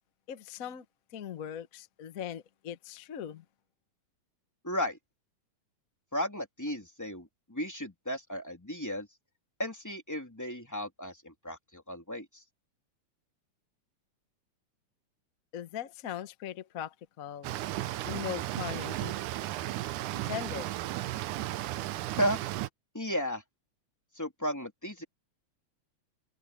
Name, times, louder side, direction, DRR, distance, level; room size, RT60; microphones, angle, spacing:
voice 1, 0.3-0.8 1.1-3.4 15.5-17.5 18.0-19.2 20.2-20.7, left 10 dB, 65° left, 0.8 m, -39 dB
voice 2, 4.6-5.0 6.1-9.1 9.6-12.4 22.2-22.4 22.9-23.4 24.1-25.0, equal, 5° left, 2.9 m, -34 dB
sound 1, 17.4-22.7, right 15 dB, 90° right, 2.3 m, -35 dB
omnidirectional pair, 3.5 m